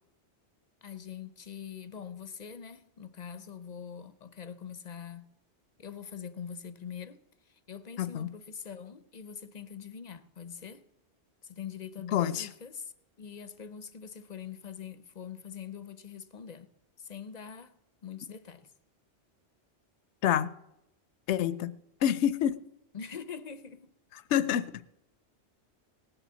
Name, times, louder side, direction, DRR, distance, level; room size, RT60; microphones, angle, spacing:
voice 1, 0.8-5.2 5.8-7.2 7.7-10.9 11.4-12.9 13.2-16.7 17.0-17.7 18.0-18.7 22.9-23.9, left 7 dB, 45° left, 0.7 m, -43 dB
voice 2, 8.0-8.3 12.1-12.5 20.2-20.5 21.3-21.7 22.0-22.6 24.3-24.7, left 10 dB, 80° left, 0.9 m, -27 dB
18.5 x 6.8 x 7.4 m
omnidirectional pair, 1.2 m